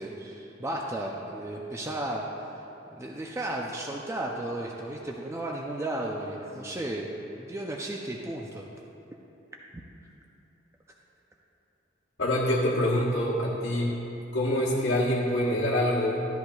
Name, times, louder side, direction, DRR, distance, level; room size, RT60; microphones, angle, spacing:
voice 1, 0.0-2.2 2.9-7.1 7.4-8.6, right 1 dB, 15° right, -1 dB, 0.5 m, -34 dB
voice 2, 12.2-14.0 14.3-16.3, left 1 dB, 75° left, -9 dB, 1.3 m, -25 dB
13.0 x 10.5 x 2.4 m, 3.0 s
head